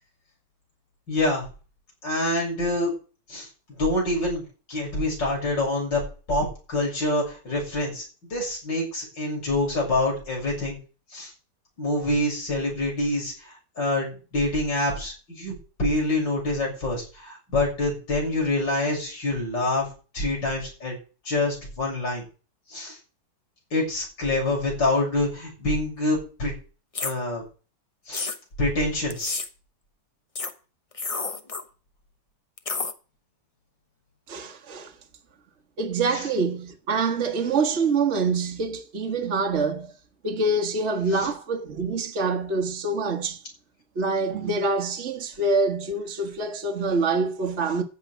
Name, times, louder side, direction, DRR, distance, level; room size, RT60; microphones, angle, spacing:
voice 1, 1.1-1.5 2.0-2.9 3.3-3.5 3.8-6.0 6.3-8.0 8.3-10.8 11.1-11.3 11.8-19.9 20.1-21.0 21.3-22.2 22.7-23.0 23.7-26.5 27.0-27.4 28.1-28.3 28.6-29.4 41.1-41.3, left 2 dB, 85° left, 7.8 m, -26 dB
sound 1, 26.9-27.1 28.1-28.4 29.1-29.5 30.3-30.5 30.9-31.6 32.6-32.9, left 4 dB, 25° left, 0.7 m, -30 dB
voice 2, 34.3-34.9 35.8-39.9 40.2-43.4 43.9-47.8, right 3 dB, 40° right, 1.6 m, -25 dB
14.5 x 5.6 x 9.2 m
omnidirectional pair, 1.9 m